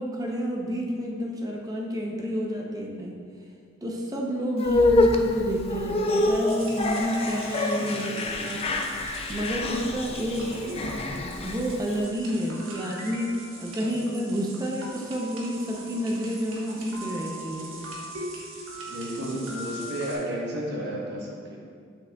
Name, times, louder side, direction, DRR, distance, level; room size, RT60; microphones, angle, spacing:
voice 1, 0.0-3.1 3.8-8.1 8.4-8.6 9.3-10.5 11.4-13.3 13.6-17.9, equal, 20° right, -1 dB, 0.7 m, -29 dB
sound 1, 4.6-12.0, left 2 dB, 30° left, 0.3 m, -26 dB
sound 2, 6.5-20.2, right 1 dB, 80° right, 1.2 m, -41 dB
voice 2, 7.9-8.6 10.3-11.1 18.9-21.6, right 1 dB, 55° right, -3 dB, 1.2 m, -33 dB
8.5 x 5.9 x 2.3 m, 2.2 s
head